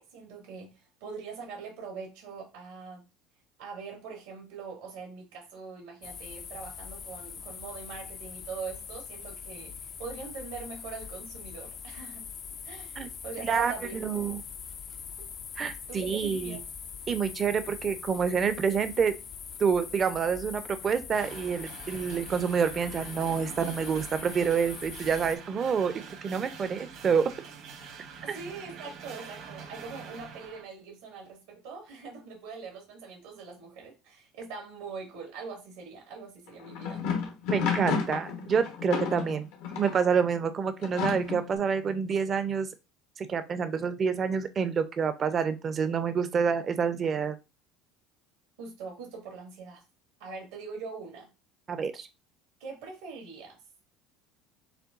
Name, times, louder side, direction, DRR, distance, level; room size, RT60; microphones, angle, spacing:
voice 1, 0.0-3.0 3.6-12.3 12.6-13.0 13.2-14.3 15.2-15.3 15.9-16.6 28.2-37.0 48.6-49.8 50.2-51.3 52.6-53.6, right 4 dB, 85° right, 0 dB, 2.1 m, -42 dB
sound 1, 6.0-25.4, left 7 dB, 45° left, 0.5 m, -42 dB
voice 2, 13.4-14.4 15.6-16.6 17.1-19.1 19.6-25.9 26.2-27.2 28.3-28.4 37.5-39.5 39.8-42.7 43.2-47.4 51.7-52.1, right 6 dB, 35° right, 11 dB, 0.6 m, -28 dB
sound 2, 21.1-30.6, right 6 dB, 65° right, 1.3 m, -45 dB
sound 3, 36.5-40.0 40.8-41.6, left 6 dB, 80° left, 1.2 m, -31 dB
6.7 x 2.2 x 2.5 m, 0.27 s
supercardioid pair, 95°, 0 cm